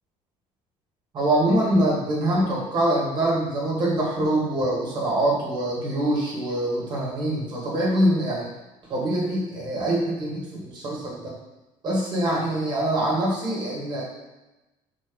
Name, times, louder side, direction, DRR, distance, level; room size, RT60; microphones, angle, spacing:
voice 1, 1.1-8.5 8.9-11.4 11.8-14.0, right 1 dB, 40° right, -4 dB, 2.2 m, -24 dB
6.6 x 4.7 x 4.0 m, 1.0 s
cardioid pair, 145°, 12 cm